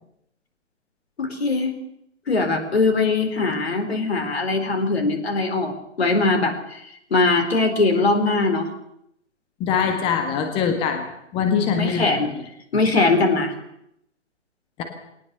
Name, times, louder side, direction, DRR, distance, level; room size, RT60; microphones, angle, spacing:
voice 1, 1.2-1.8 2.3-8.7 11.8-12.3 12.7-13.5, left 3 dB, 55° left, 6 dB, 4.2 m, -21 dB
voice 2, 9.6-11.1 11.3-12.1, left 7 dB, 15° left, 5 dB, 1.7 m, -22 dB
22.0 x 18.5 x 6.9 m, 0.79 s
figure-of-eight pair, 135°, 37 cm